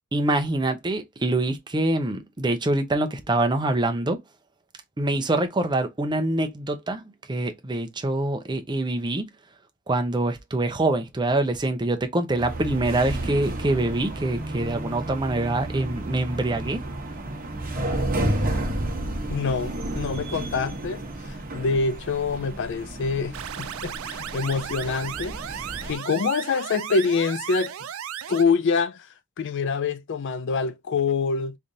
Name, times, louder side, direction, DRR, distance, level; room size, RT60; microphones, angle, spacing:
voice 1, 0.1-4.2 5.0-9.3 9.9-16.8, right 2 dB, 20° right, 0.6 m, -25 dB
sound 1, 12.4-25.9, right 1 dB, 45° right, 1.1 m, -31 dB
voice 2, 19.3-25.4 25.8-27.7 28.3-29.1 29.4-31.6, left 4 dB, 60° left, 0.4 m, -26 dB
sound 2, 23.3-28.4, right 9 dB, 80° right, 0.4 m, -35 dB
3.8 x 3.4 x 2.7 m
head